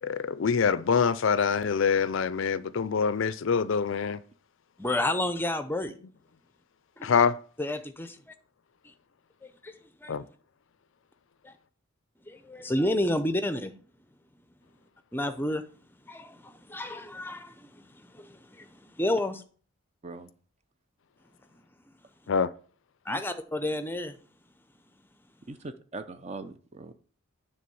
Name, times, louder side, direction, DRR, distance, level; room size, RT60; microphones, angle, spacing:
voice 1, 0.0-4.2 7.0-7.4 10.1-10.2 22.3-22.5, left 6 dB, 60° left, 0.4 m, -25 dB
voice 2, 4.8-5.9 7.0-7.1 7.6-8.2 8.8-8.9 9.4-9.7 10.0-10.2 11.4-11.5 12.3-13.7 15.1-15.6 16.1-19.4 23.1-24.1, left 1 dB, 10° left, 0.6 m, -31 dB
voice 3, 25.5-26.9, right 3 dB, 30° right, 0.6 m, -41 dB
9.4 x 3.5 x 6.9 m
head